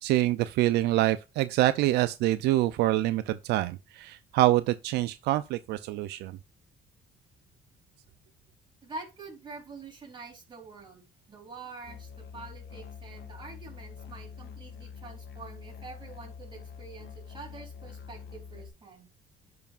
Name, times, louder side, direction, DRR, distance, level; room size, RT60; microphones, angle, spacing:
voice 1, 0.0-6.3, right 15 dB, 80° right, 0.4 m, -26 dB
voice 2, 8.8-19.1, right 3 dB, 30° right, 3.6 m, -46 dB
Musical instrument, 11.8-18.7, left 6 dB, 70° left, 1.3 m, -45 dB
10.5 x 4.7 x 2.4 m
cardioid pair, 110°, 17 cm